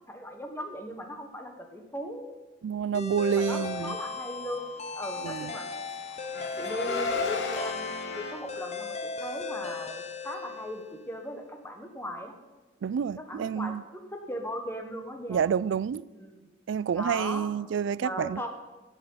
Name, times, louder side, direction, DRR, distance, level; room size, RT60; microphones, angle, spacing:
voice 1, 0.1-2.3 3.3-5.7 6.3-12.3 13.2-15.4 16.1-16.5 16.9-17.5 17.9-18.5, equal, 15° left, 1.4 m, -38 dB
voice 2, 2.6-4.0 5.2-5.5 12.8-13.8 15.3-16.0 16.7-18.5, right 7 dB, 80° right, 0.3 m, -28 dB
sound 1, 2.9-11.1, left 4 dB, 35° left, 0.9 m, -37 dB
Car, 5.2-7.7, left 4 dB, 85° left, 1.1 m, -34 dB
Brass instrument, 6.3-9.0, left 3 dB, 60° left, 1.9 m, -39 dB
16.5 x 6.4 x 5.6 m
head